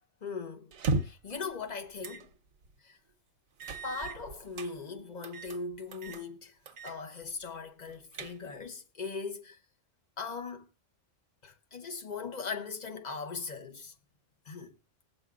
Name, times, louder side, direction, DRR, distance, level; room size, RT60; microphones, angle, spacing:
voice 1, 0.2-0.7 1.0-2.3 2.8-3.0 3.8-6.6 6.8-9.6 10.2-10.7 11.4-13.9 14.4-14.7, left 4 dB, 35° left, 1.1 m, -39 dB
sound 1, 0.7-1.3 2.0-2.3 2.7-2.8 3.6-4.7 5.2-5.6 5.9-6.2 6.7-7.0 7.3-7.4 7.9-8.7, right 3 dB, 80° right, 1.3 m, -35 dB
21.0 x 7.7 x 2.4 m
omnidirectional pair, 1.4 m